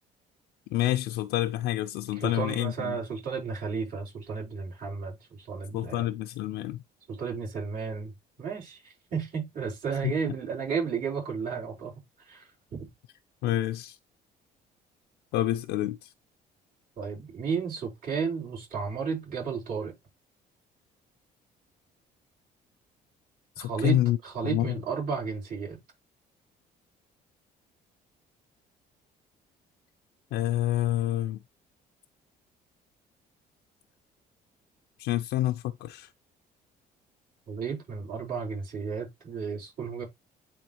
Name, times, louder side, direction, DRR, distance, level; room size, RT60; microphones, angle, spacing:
voice 1, 0.7-3.0 5.7-6.8 10.0-10.1 13.4-14.0 15.3-16.1 23.6-24.2 24.4-24.7 30.3-31.4 35.0-36.1, left 14 dB, 85° left, 0.5 m, -28 dB
voice 2, 2.2-6.1 7.1-8.1 8.4-8.8 9.1-11.9 12.3-12.9 17.0-19.9 23.6-25.8 37.5-40.0, right 6 dB, 60° right, 4.6 m, -33 dB
9.5 x 3.7 x 2.9 m
cardioid pair, 110°, 17 cm